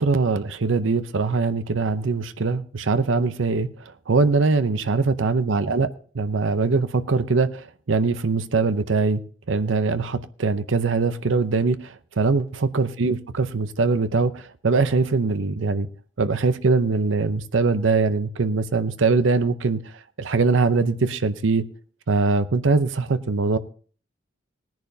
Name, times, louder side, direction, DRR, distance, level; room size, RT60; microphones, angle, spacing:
voice 1, 0.0-3.7 4.1-7.6 7.9-9.2 9.5-15.9 16.2-19.8 20.2-21.7 22.1-23.6, right 4 dB, 85° right, 0.7 m, -22 dB
19.0 x 10.5 x 2.7 m
head